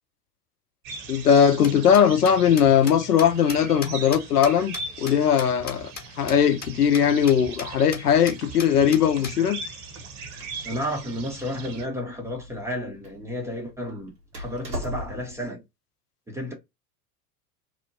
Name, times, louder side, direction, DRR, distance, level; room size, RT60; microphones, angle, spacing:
sound 1, 0.8-11.8, right 4 dB, 45° right, 0.8 m, -39 dB
voice 1, 1.1-5.9 6.2-9.6, left 8 dB, 80° left, 0.6 m, -19 dB
sound 2, 1.4-6.0 6.3-6.4 6.6-6.7 6.9-7.0 7.3-7.7 7.9-8.0 8.3-9.3, left 5 dB, 20° left, 0.8 m, -36 dB
Door, 9.8-15.4, equal, 90° right, 0.9 m, -40 dB
voice 2, 10.6-15.6 16.3-16.5, equal, 5° right, 0.5 m, -32 dB
2.8 x 2.0 x 2.5 m
figure-of-eight pair, 80°, 46 cm